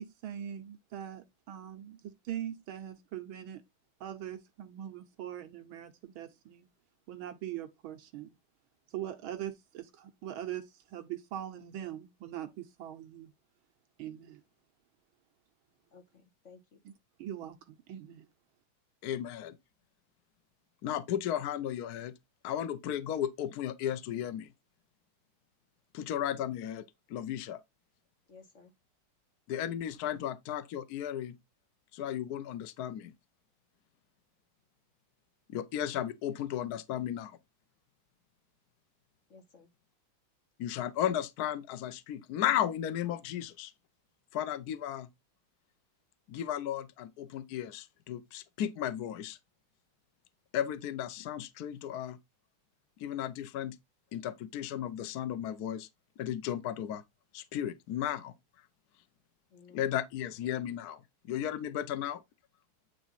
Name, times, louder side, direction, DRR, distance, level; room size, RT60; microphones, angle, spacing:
voice 1, 0.0-3.6 4.0-6.7 7.1-8.3 8.9-13.3 14.0-14.4 16.9-17.0 17.2-18.3, right 11 dB, 80° right, 1.6 m, -42 dB
voice 2, 15.9-16.8 28.3-28.7 39.3-39.7 59.5-60.0, left 4 dB, 35° left, 1.8 m, -56 dB
voice 3, 19.0-19.6 20.8-22.1 22.4-24.5 25.9-26.8 27.1-27.6 29.5-31.4 31.9-33.1 35.5-37.4 40.6-43.7 44.3-45.1 46.3-49.4 50.5-52.2 53.0-53.8 54.1-55.9 56.2-57.0 57.3-58.3 59.7-61.0 61.3-62.2, left 10 dB, 65° left, 1.0 m, -34 dB
9.2 x 3.5 x 4.1 m
omnidirectional pair, 2.3 m